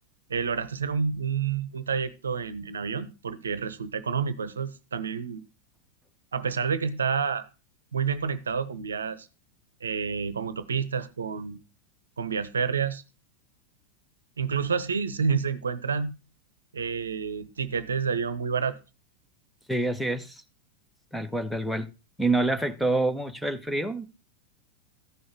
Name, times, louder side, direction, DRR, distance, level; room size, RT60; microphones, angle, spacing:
voice 1, 0.3-5.4 6.3-7.5 7.9-9.3 9.8-11.6 12.2-13.0 14.4-16.1 16.7-18.8, right 6 dB, 70° right, 0.9 m, -29 dB
voice 2, 19.7-20.4 21.1-21.9 22.2-24.1, right 2 dB, ahead, 1.4 m, -27 dB
14.0 x 6.3 x 6.0 m
figure-of-eight pair, 90°, 0 cm